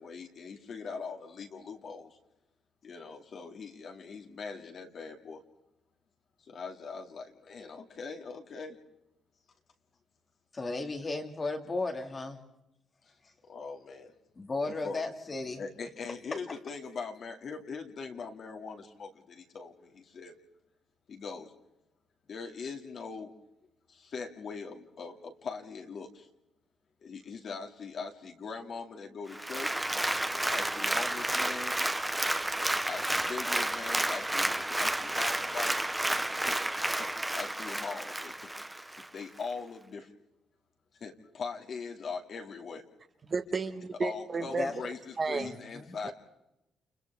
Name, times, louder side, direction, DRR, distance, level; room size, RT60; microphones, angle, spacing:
voice 1, 0.0-2.2 2.8-5.4 6.5-8.8 13.5-14.1 14.6-15.0 15.6-20.3 21.1-21.5 22.3-23.3 23.9-26.3 27.0-29.8 30.5-31.8 32.9-35.8 36.3-38.5 39.1-40.1 41.0-42.8 44.0-46.1, left 5 dB, 40° left, 2 dB, 2.3 m, -41 dB
voice 2, 10.5-12.4 14.4-15.6 44.6-44.7 45.4-45.9, left 3 dB, 20° left, 4 dB, 2.2 m, -35 dB
Applause, 29.3-39.1 39.5-39.6, right 1 dB, 5° right, 0.8 m, -31 dB
voice 3, 43.2-44.7 45.2-45.6 46.0-46.1, right 4 dB, 25° right, 8 dB, 1.3 m, -32 dB
30.0 x 29.5 x 3.5 m, 0.90 s
cardioid pair, 180°, 0 cm